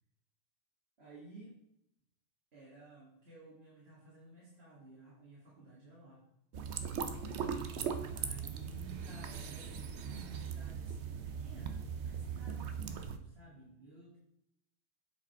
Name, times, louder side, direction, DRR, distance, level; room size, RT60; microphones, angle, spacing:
voice 1, 1.0-1.6 2.5-6.2 8.1-14.2, right 2 dB, 70° right, -6 dB, 2.2 m, -54 dB
Slow Bubbles, 6.5-13.2, right 6 dB, 85° right, 1.0 m, -39 dB
8.6 x 5.0 x 4.5 m, 0.81 s
omnidirectional pair, 1.1 m